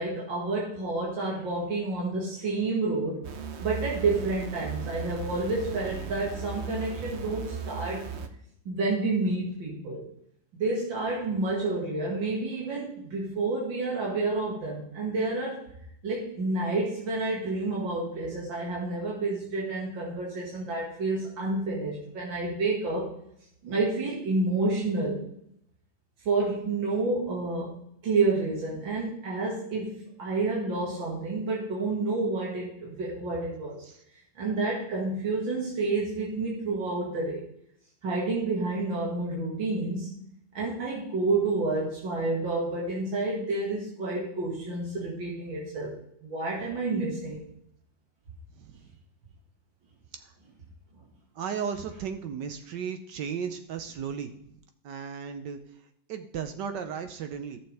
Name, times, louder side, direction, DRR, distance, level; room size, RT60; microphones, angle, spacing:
voice 1, 0.0-3.2 3.6-8.1 8.7-10.0 10.5-15.6 16.0-23.1 23.6-25.2 26.3-27.7 28.0-29.9 30.2-33.8 34.4-37.4 38.0-40.1 40.5-45.9 46.2-47.4, right 3 dB, 90° right, -4 dB, 2.8 m, -29 dB
sound 1, 3.2-8.3, right 6 dB, 50° right, 0.8 m, -37 dB
voice 2, 51.3-54.3 54.8-55.8 56.1-57.6, right 7 dB, 70° right, 8 dB, 1.3 m, -35 dB
14.5 x 6.9 x 3.4 m, 0.72 s
omnidirectional pair, 2.0 m